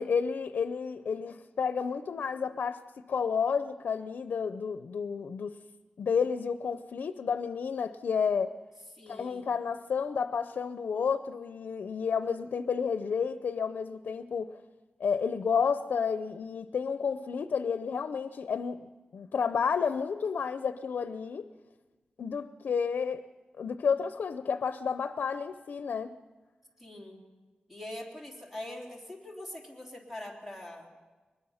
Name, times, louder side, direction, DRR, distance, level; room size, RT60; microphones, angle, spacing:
voice 1, 0.0-2.8 3.1-5.6 6.0-8.5 9.1-14.6 15.0-21.5 22.2-23.2 23.6-26.2, left 6 dB, 85° left, 11 dB, 0.6 m, -31 dB
voice 2, 8.9-9.5 26.8-27.2 27.7-30.9, left 1 dB, 5° right, 0 dB, 3.3 m, -43 dB
22.5 x 20.0 x 5.7 m, 1.3 s
wide cardioid pair, 130°, 3 cm